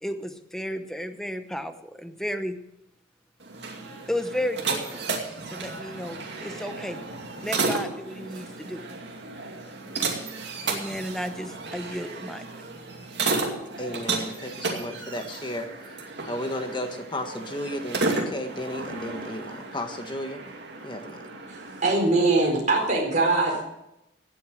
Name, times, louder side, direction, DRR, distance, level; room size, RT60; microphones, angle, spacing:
voice 1, 0.0-2.6 4.1-5.2 5.5-7.0 7.4-8.8 10.7-12.5, equal, ahead, 8 dB, 0.8 m, -33 dB
sound 1, 3.4-21.9, right 3 dB, 60° right, 2.5 m, -33 dB
voice 2, 13.8-15.7 16.3-20.4 20.8-21.3, left 1 dB, 25° left, 6 dB, 1.5 m, -34 dB
voice 3, 21.5-23.6, right 3 dB, 40° right, -1 dB, 4.2 m, -22 dB
17.0 x 8.2 x 6.5 m, 0.86 s
head